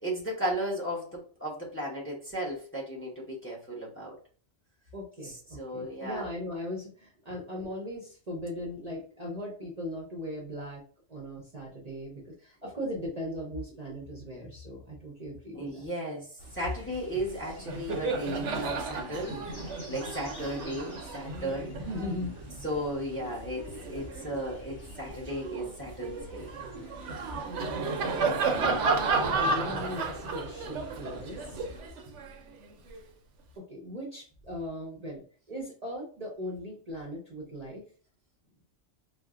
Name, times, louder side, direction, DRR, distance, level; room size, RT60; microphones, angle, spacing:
voice 1, 0.0-4.2 5.6-6.2 15.5-19.6 19.9-21.7 22.6-26.5, right 1 dB, 15° left, 0.7 m, -35 dB
voice 2, 4.9-10.8 11.1-15.9 21.8-22.3 27.7-27.8 28.2-28.3 29.2-31.6 33.6-37.9, left 1 dB, 40° right, 0.6 m, -38 dB
sound 1, 16.4-31.8, equal, 55° left, 1.4 m, -49 dB
Laughter, 17.1-17.3 17.6-24.3 24.8-33.0, right 4 dB, 75° right, 0.9 m, -33 dB
4.3 x 2.0 x 2.4 m
omnidirectional pair, 1.3 m